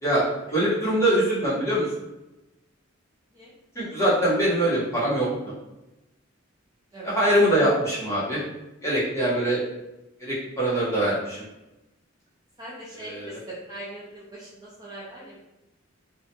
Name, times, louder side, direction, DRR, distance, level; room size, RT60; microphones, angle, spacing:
voice 1, 0.5-1.8 3.7-5.5 7.0-8.4 8.8-9.6 10.2-11.4 13.0-13.4, right 1 dB, 15° left, -9 dB, 1.0 m, -23 dB
voice 2, 12.6-15.4, right 1 dB, 20° right, -7 dB, 0.4 m, -41 dB
2.4 x 2.2 x 2.8 m, 0.97 s
head